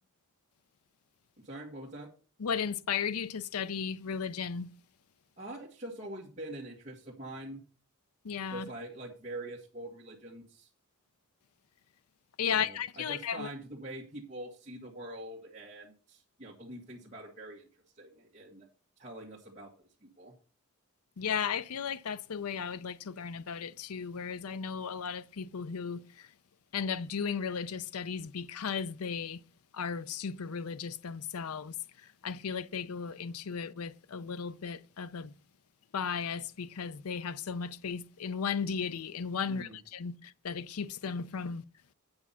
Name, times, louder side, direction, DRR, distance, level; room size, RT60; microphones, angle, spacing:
voice 1, 1.4-2.1 5.4-7.6 8.5-10.7 12.5-17.7 18.0-18.7 19.0-19.7 20.0-20.3 39.5-39.8, right 1 dB, 35° right, 1.8 m, -44 dB
voice 2, 2.4-4.7 8.2-8.7 12.4-13.5 21.2-26.3 26.7-29.4 29.7-35.4 35.9-41.6, left 6 dB, 90° left, 0.6 m, -35 dB
8.8 x 6.0 x 5.7 m
head